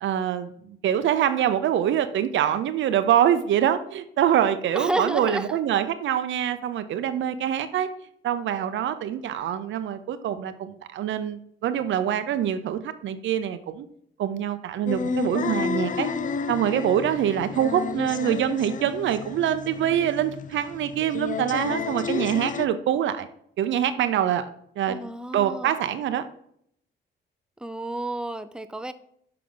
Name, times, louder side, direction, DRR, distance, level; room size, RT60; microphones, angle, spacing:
voice 1, 0.0-7.9 8.2-13.9 14.2-16.1 16.5-23.3 23.6-24.5 24.8-25.0 25.3-26.2, right 10 dB, 70° right, 10 dB, 0.6 m, -25 dB
voice 2, 4.7-5.6 17.5-18.4 24.9-25.7 27.6-28.9, right 1 dB, 5° right, 9 dB, 0.5 m, -32 dB
sound 1, 14.9-22.7, left 5 dB, 40° left, 0.5 m, -31 dB
6.4 x 5.7 x 3.8 m, 0.69 s
cardioid pair, 90°, 20 cm